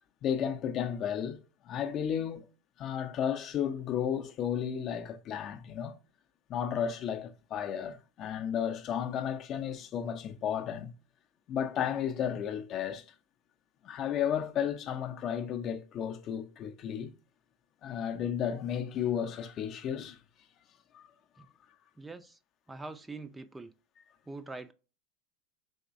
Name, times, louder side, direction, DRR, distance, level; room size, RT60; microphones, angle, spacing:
voice 1, 0.2-1.4 1.6-2.4 2.8-6.0 6.5-10.9 11.5-13.0 13.8-17.1 17.8-20.2 20.9-21.1, left 9 dB, 45° left, 0.5 m, -33 dB
voice 2, 22.0-22.4 22.7-23.7 24.3-24.7, right 3 dB, 10° right, 0.4 m, -43 dB
3.5 x 3.0 x 2.5 m
hypercardioid pair, 90°, 0 cm